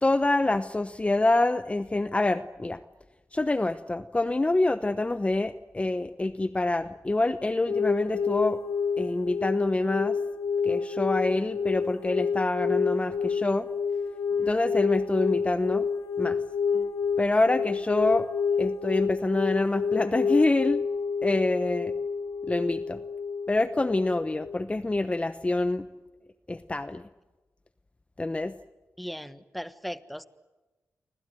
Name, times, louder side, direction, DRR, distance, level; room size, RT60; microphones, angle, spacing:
voice 1, 0.0-2.8 3.3-8.6 9.0-10.2 10.6-13.7 14.4-15.9 16.2-16.4 17.2-18.3 18.6-20.8 21.2-21.9 22.5-23.0 23.5-25.9 26.5-27.0 28.2-28.5, left 2 dB, 25° left, 11 dB, 0.9 m, -26 dB
sound 1, 7.7-24.6, left 5 dB, 65° left, 1.3 m, -29 dB
voice 2, 29.0-30.2, equal, ahead, 12 dB, 1.5 m, -37 dB
29.0 x 25.5 x 7.9 m, 1.2 s
cardioid pair, 50°, 5 cm